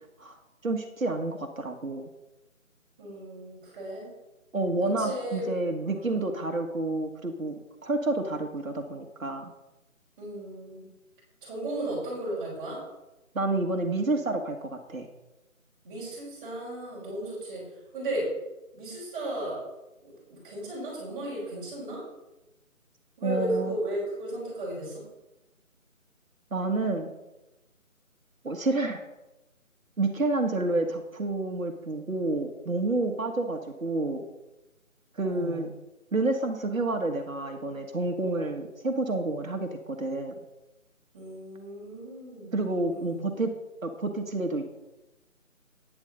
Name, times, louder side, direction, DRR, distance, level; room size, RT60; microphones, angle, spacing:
voice 1, 0.6-2.1 4.5-7.5 7.8-9.5 13.3-15.1 23.2-23.7 26.5-27.1 28.4-29.0 30.0-34.2 35.1-35.7 36.1-40.3 42.5-43.5 43.8-44.7, right 2 dB, 70° right, 4 dB, 1.7 m, -29 dB
voice 2, 3.0-4.1 5.0-5.5 5.8-6.5 10.2-10.9 11.4-12.8 15.8-18.3 18.7-19.6 20.0-22.0 23.2-25.0 30.6-30.8 35.2-35.7 41.1-42.6 42.9-43.3, right 1 dB, 10° right, -7 dB, 3.8 m, -35 dB
11.5 x 9.6 x 4.0 m, 0.99 s
figure-of-eight pair, 160°, 42 cm